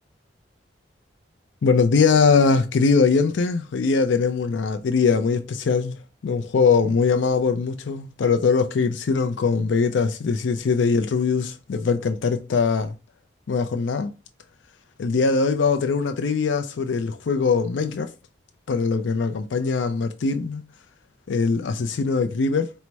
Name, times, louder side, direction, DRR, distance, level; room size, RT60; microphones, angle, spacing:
voice 1, 1.6-6.0 6.2-12.9 13.5-14.1 15.0-18.1 18.7-20.7 21.3-22.7, left 4 dB, 85° left, 0.4 m, -21 dB
4.6 x 2.1 x 4.0 m
head